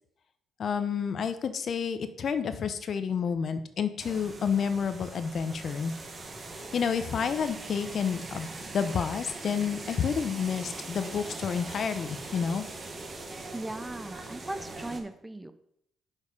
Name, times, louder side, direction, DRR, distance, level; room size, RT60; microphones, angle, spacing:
voice 1, 0.6-5.9 6.7-8.5 8.7-12.6, left 6 dB, 55° left, 10 dB, 0.6 m, -29 dB
sound 1, 4.0-15.0, right 2 dB, 35° right, 1.5 m, -41 dB
voice 2, 13.5-15.5, right 2 dB, 15° right, 11 dB, 0.6 m, -38 dB
6.3 x 5.3 x 5.2 m, 0.74 s
cardioid pair, 90°, 0 cm